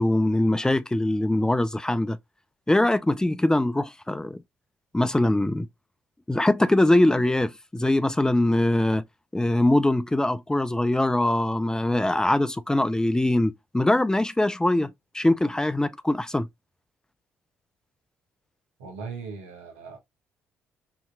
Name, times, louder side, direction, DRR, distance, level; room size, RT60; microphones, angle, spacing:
voice 1, 0.0-2.2 2.7-4.4 4.9-5.7 6.3-9.0 9.3-16.5, left 1 dB, 10° left, 0.5 m, -22 dB
voice 2, 18.8-20.0, right 5 dB, 90° right, 1.2 m, -38 dB
5.7 x 2.9 x 2.2 m
hypercardioid pair, 50°, 6 cm